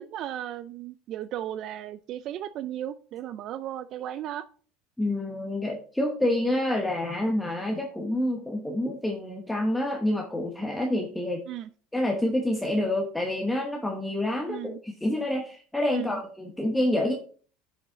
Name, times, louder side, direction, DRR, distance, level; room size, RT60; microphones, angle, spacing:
voice 1, 0.0-4.5 11.5-11.7 14.4-14.8 15.9-16.2, right 11 dB, 50° right, 15 dB, 0.4 m, -35 dB
voice 2, 5.0-11.4 11.9-17.1, left 1 dB, 5° left, 0 dB, 1.1 m, -28 dB
7.1 x 7.1 x 4.0 m, 0.44 s
supercardioid pair, 115°, 0 cm